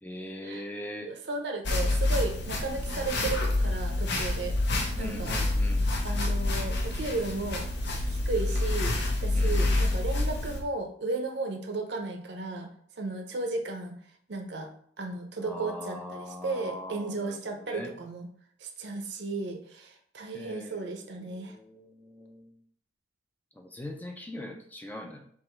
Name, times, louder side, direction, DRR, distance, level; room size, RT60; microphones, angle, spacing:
voice 1, 0.0-1.1 4.9-5.9 9.3-9.6 15.4-17.4 17.7-17.9 20.3-22.6 23.6-25.2, left 1 dB, 10° left, 2 dB, 0.4 m, -41 dB
voice 2, 1.0-4.6 5.0-5.4 6.0-7.7 8.1-9.0 9.2-13.9 14.3-18.3 18.6-21.6, right 3 dB, 65° right, 4 dB, 0.7 m, -34 dB
sound 1, 1.6-10.6, left 2 dB, 65° left, 0.8 m, -28 dB
3.6 x 2.9 x 4.4 m, 0.62 s
head